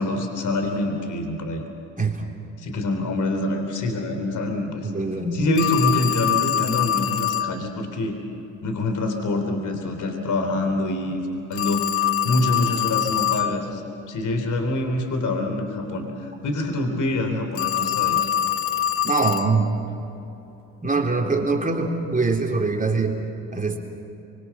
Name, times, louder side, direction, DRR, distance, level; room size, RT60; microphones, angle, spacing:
voice 1, 0.0-1.6 2.6-4.9 5.3-8.2 8.6-11.2 11.5-13.8 14.1-18.3, left 2 dB, 50° left, 5 dB, 3.8 m, -25 dB
voice 2, 4.8-5.4 19.0-19.7 20.8-23.2 23.5-23.8, right 4 dB, 20° right, 1 dB, 3.7 m, -23 dB
Telephone, 5.6-7.5 11.5-13.6 17.5-19.5, left 10 dB, 35° left, 0.9 m, -24 dB
25.0 x 24.5 x 6.0 m, 2.9 s
hypercardioid pair, 55°, 39 cm